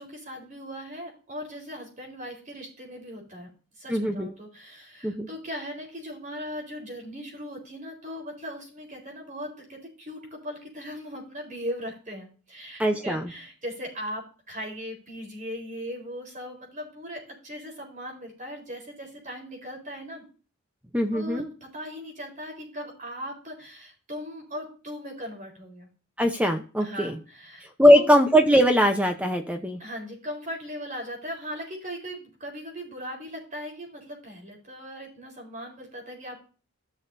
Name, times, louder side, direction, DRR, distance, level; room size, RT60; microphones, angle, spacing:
voice 1, 0.0-3.5 3.8-20.2 21.1-25.9 26.8-28.1 29.8-36.4, equal, 35° right, 1 dB, 4.4 m, -38 dB
voice 2, 3.9-4.3 5.0-5.3 12.8-13.2 20.9-21.5 26.2-27.2 27.8-29.8, equal, 5° right, 5 dB, 0.7 m, -20 dB
14.5 x 6.4 x 2.7 m, 0.36 s
head